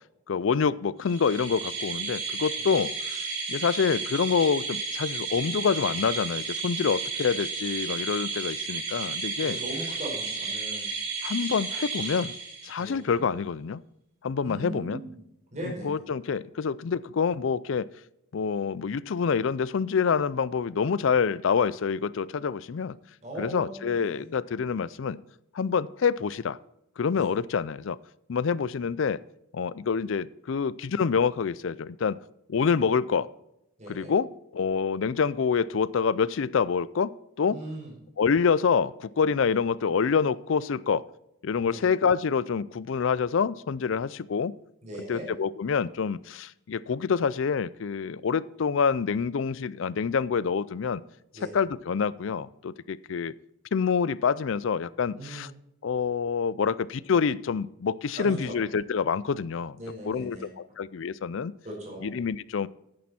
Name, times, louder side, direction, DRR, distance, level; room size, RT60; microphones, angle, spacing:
voice 1, 0.3-9.6 11.2-12.3 12.6-13.8 14.2-15.0 15.8-17.9 18.3-23.0 23.4-25.2 25.5-26.6 27.0-28.0 28.3-29.2 29.5-32.2 32.5-33.3 33.9-34.3 34.5-37.1 37.4-37.6 38.2-41.0 41.4-44.5 45.1-51.0 51.5-53.3 53.7-55.5 55.8-59.8 60.1-60.4 60.8-61.5 62.0-62.7, left 6 dB, 70° left, 19 dB, 0.4 m, -26 dB
sound 1, 1.0-12.9, right 4 dB, 85° right, 4.3 m, -33 dB
voice 2, 9.4-10.8 12.8-13.2 14.4-15.1 15.5-16.0 23.2-24.3 27.1-27.3 33.8-34.1 37.5-37.9 41.6-41.8 44.8-45.3 51.3-51.5 55.1-55.5 58.1-58.6 59.8-60.5 61.6-62.1, right 1 dB, 35° right, -3 dB, 4.8 m, -39 dB
10.5 x 9.5 x 4.3 m, 0.84 s
head